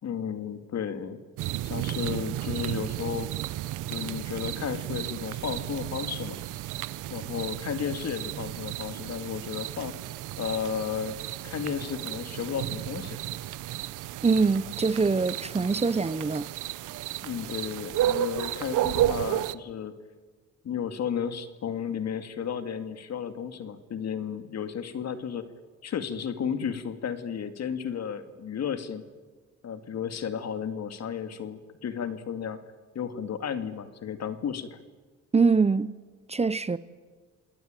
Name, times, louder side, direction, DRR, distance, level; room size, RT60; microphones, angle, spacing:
voice 1, 0.0-1.2 1.6-3.3 3.9-6.4 7.1-9.9 10.4-11.2 11.4-13.2 17.2-20.0 20.6-25.4 25.8-29.0 29.6-32.6 32.9-34.8, left 7 dB, 60° left, 2.4 m, -33 dB
sound 1, 1.4-19.5, right 13 dB, 85° right, 0.8 m, -33 dB
voice 2, 14.2-16.5 35.3-35.9 36.3-36.8, right 4 dB, 20° right, 0.8 m, -24 dB
28.0 x 19.5 x 9.2 m
cardioid pair, 90°, 30 cm